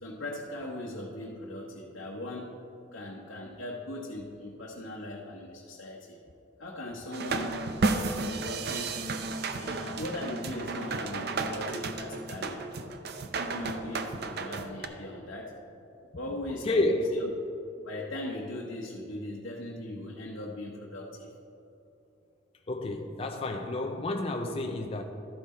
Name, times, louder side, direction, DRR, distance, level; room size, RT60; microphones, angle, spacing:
voice 1, 0.0-2.6 2.9-6.2 6.6-7.6 8.2-9.0 9.6-12.6 13.4-15.6 16.1-17.3 17.8-21.3, left 1 dB, 75° left, 1.0 m, -39 dB
sound 1, 7.1-14.9, right 3 dB, 50° right, 0.5 m, -33 dB
voice 2, 16.6-17.1 22.7-25.0, left 2 dB, 30° left, 0.4 m, -30 dB
13.0 x 5.6 x 4.3 m
head